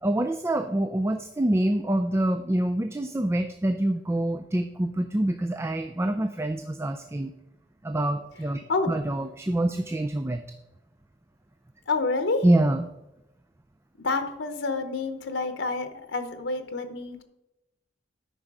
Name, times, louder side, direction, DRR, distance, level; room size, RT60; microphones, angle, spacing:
voice 1, 0.0-7.3 7.8-8.6 8.9-10.4 12.4-12.9, right 1 dB, 15° right, 7 dB, 0.4 m, -26 dB
voice 2, 11.9-12.4 14.0-17.2, left 3 dB, 90° left, 8 dB, 0.9 m, -28 dB
12.5 x 5.5 x 4.8 m, 0.92 s
head